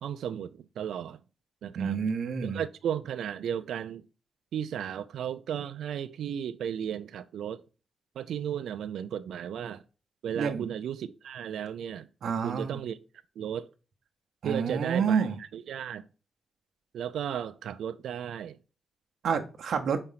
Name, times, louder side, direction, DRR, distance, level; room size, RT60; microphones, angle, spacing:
voice 1, 0.0-1.2 1.6-2.1 2.4-4.0 4.5-7.6 8.2-9.8 10.2-12.1 12.4-13.0 13.4-13.7 14.4-15.3 15.5-16.1 16.9-18.6, right 9 dB, 80° right, 0.4 m, -34 dB
voice 2, 1.8-2.6 10.3-10.6 12.2-12.8 14.4-15.4 19.2-20.0, right 6 dB, 60° right, 0.8 m, -28 dB
4.9 x 4.4 x 5.6 m
wide cardioid pair, 170°, 0 cm